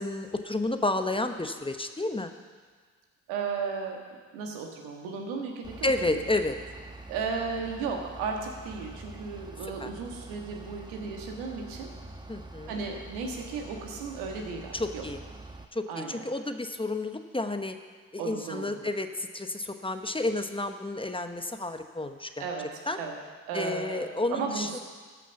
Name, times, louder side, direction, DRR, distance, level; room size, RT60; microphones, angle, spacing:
voice 1, 0.0-2.3 5.8-6.6 9.8-9.9 12.3-12.8 14.7-15.2 15.7-17.7 18.1-22.4 22.9-23.0 23.5-24.8, left 2 dB, 15° left, 7 dB, 0.9 m, -31 dB
voice 2, 3.3-4.0 4.3-6.2 7.1-11.9 12.7-15.0 15.9-16.2 18.2-18.7 22.4-22.7 22.9-23.2 23.4-24.0 24.3-24.8, right 5 dB, 85° right, 1 dB, 1.6 m, -35 dB
Bus / Idling, 5.6-15.6, right 2 dB, 10° right, 1.0 m, -45 dB
13.0 x 6.1 x 7.0 m, 1.5 s
hypercardioid pair, 50°, 38 cm